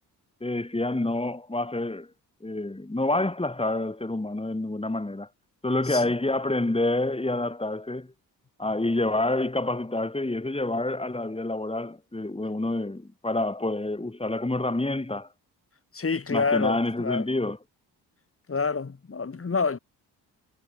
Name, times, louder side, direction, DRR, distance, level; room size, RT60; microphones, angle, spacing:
voice 1, 0.4-2.1 2.4-5.3 5.6-8.1 8.6-15.3 16.3-17.6, left 2 dB, 15° left, 6.7 m, -28 dB
voice 2, 15.9-17.2 18.5-19.8, left 4 dB, 35° left, 3.4 m, -27 dB
cardioid pair, 70°, 40 cm